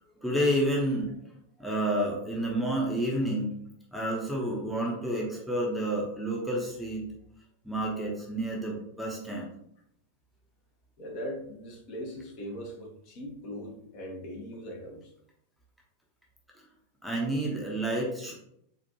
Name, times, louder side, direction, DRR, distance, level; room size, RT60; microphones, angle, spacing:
voice 1, 0.2-1.1 1.6-3.5 3.9-7.1 7.6-9.5 17.0-18.3, right 1 dB, ahead, -3 dB, 0.8 m, -29 dB
voice 2, 11.0-15.1, equal, 45° left, -1 dB, 1.0 m, -40 dB
4.1 x 2.5 x 2.9 m, 0.73 s
figure-of-eight pair, 90°, 0 cm